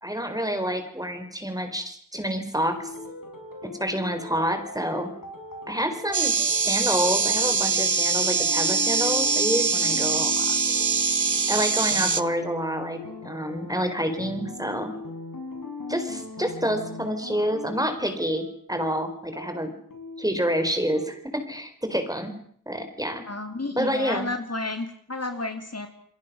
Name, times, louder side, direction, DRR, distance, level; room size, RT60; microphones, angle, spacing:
voice 1, 0.0-2.9 3.8-5.1 5.7-10.6 11.5-14.9 15.9-19.7 20.2-22.3 22.7-23.2 23.8-24.3, equal, 10° right, 7 dB, 4.4 m, -28 dB
sound 1, 2.7-21.1, left 3 dB, 75° left, 5.1 m, -39 dB
sound 2, 6.1-12.2, right 5 dB, 60° right, 1.0 m, -23 dB
voice 2, 23.3-25.9, left 2 dB, 45° left, 6 dB, 3.0 m, -31 dB
28.5 x 22.0 x 6.3 m, 0.63 s
wide cardioid pair, 60°, 34 cm